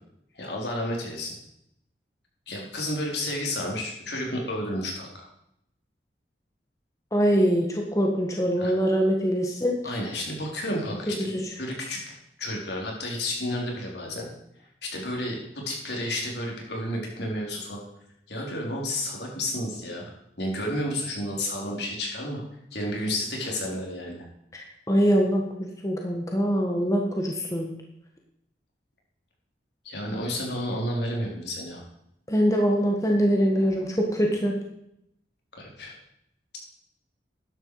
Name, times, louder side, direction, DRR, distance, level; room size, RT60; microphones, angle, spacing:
voice 1, 0.3-1.3 2.5-5.3 8.6-8.7 9.8-11.3 11.6-14.3 14.8-15.4 15.7-17.8 18.3-20.1 20.4-22.4 22.7-24.2 29.8-31.8 35.5-35.9, left 1 dB, 75° left, -1 dB, 3.9 m, -31 dB
voice 2, 7.1-9.9 11.2-11.5 24.5-25.6 25.8-27.7 32.3-34.5, equal, 20° left, 0 dB, 1.6 m, -23 dB
13.0 x 11.0 x 4.9 m, 0.78 s
head